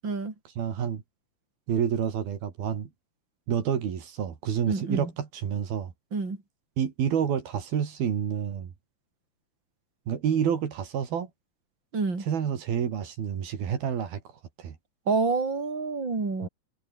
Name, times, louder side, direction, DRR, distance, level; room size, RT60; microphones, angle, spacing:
voice 1, 0.5-1.0 1.7-2.9 3.5-5.9 6.8-8.7 10.1-11.3 12.2-14.2 14.6-14.8 16.4-16.5, right 8 dB, 80° right, 4.8 m, -28 dB
voice 2, 4.7-5.1 6.1-6.4 11.9-12.3 15.1-16.5, right 4 dB, 30° right, 5.7 m, -28 dB
omnidirectional pair, 4.2 m